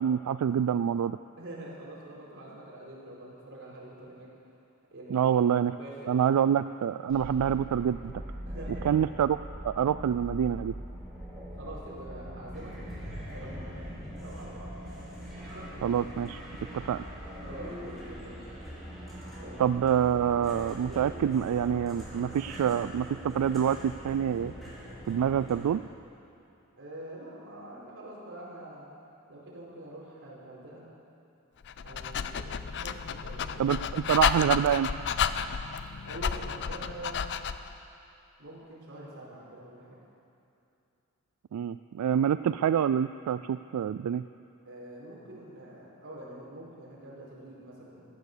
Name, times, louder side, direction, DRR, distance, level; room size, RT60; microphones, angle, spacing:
voice 1, 0.0-1.2 5.1-5.7 6.1-8.1 8.8-9.4 9.6-10.7 15.8-16.4 16.7-17.0 19.6-24.5 25.1-25.8 33.6-34.9 41.5-44.2, right 9 dB, 85° right, 12 dB, 0.3 m, -26 dB
voice 2, 1.4-4.3 4.9-5.3 5.7-6.1 8.4-9.0 11.6-14.7 15.3-15.7 17.4-18.4 19.3-19.7 20.9-21.2 26.8-28.9 29.3-30.8 31.8-33.8 36.1-37.3 38.4-40.0 44.6-48.1, right 1 dB, 60° right, -5 dB, 4.5 m, -45 dB
sound 1, 7.1-25.6, equal, ahead, 4.6 m, -42 dB
Dog, 31.6-37.7, left 7 dB, 55° left, 0.5 m, -31 dB
15.5 x 12.0 x 6.8 m, 2.7 s
head